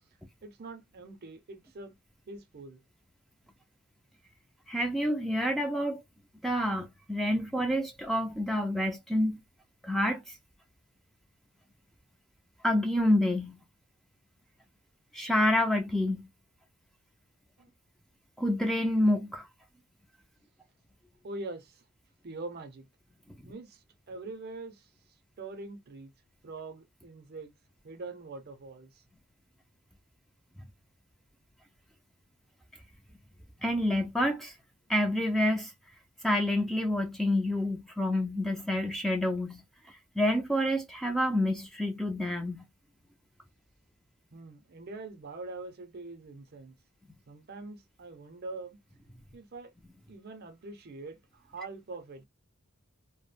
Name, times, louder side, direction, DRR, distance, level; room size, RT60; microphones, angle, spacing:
voice 1, 0.4-1.9 2.3-2.8 17.6-17.7 21.2-21.8 22.2-22.9 23.5-24.9 25.4-26.1 26.4-27.5 27.8-29.0 44.3-46.8 47.3-48.8 49.3-49.7 50.1-52.3, right 3 dB, 45° right, 0.5 m, -43 dB
voice 2, 4.7-6.0 6.4-9.4 9.8-10.4 12.6-13.6 15.1-16.3 18.4-19.5 33.6-34.6 34.9-35.7 36.2-39.6 40.2-42.7, left 1 dB, ahead, 0.3 m, -28 dB
2.2 x 2.0 x 3.2 m
head